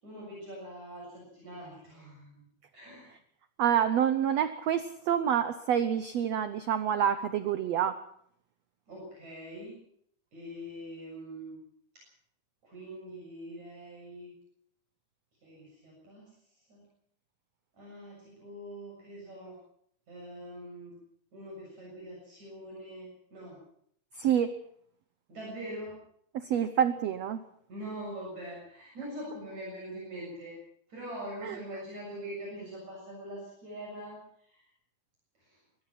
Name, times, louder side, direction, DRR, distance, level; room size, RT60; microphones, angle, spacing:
voice 1, 0.0-2.4 2.7-3.1 8.9-9.8 10.3-11.6 11.9-12.0 12.6-14.3 15.4-16.8 17.8-19.6 20.1-21.0 21.3-23.6 25.3-26.0 27.7-30.6 30.9-34.7 35.4-35.6, right 1 dB, 50° right, -3 dB, 8.5 m, -43 dB
voice 2, 3.6-8.0 24.1-24.5 26.3-27.4 31.4-31.6, right 9 dB, 80° right, 10 dB, 1.5 m, -27 dB
23.5 x 19.0 x 6.0 m, 0.67 s
omnidirectional pair, 4.2 m